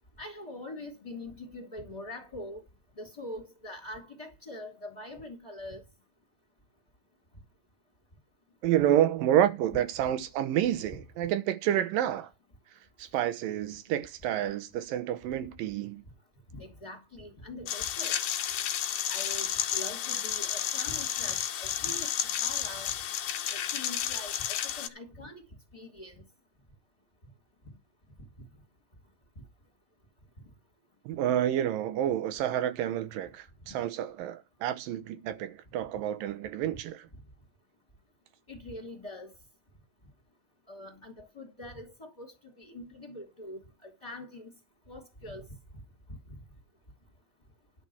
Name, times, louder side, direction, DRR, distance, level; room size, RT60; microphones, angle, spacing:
voice 1, 0.2-2.6 3.0-5.8 16.5-18.2 19.1-22.1 22.4-22.9 23.5-25.4 25.7-26.1 33.6-33.7 38.5-39.3 40.7-44.5 44.9-45.5 46.3-46.4, left 1 dB, 15° left, 2.7 m, -43 dB
voice 2, 8.6-12.3 13.0-16.0 31.1-37.1, right 11 dB, 85° right, 2.7 m, -29 dB
sound 1, 17.7-24.9, left 10 dB, 70° left, 1.7 m, -32 dB
11.0 x 6.0 x 7.1 m
omnidirectional pair, 3.9 m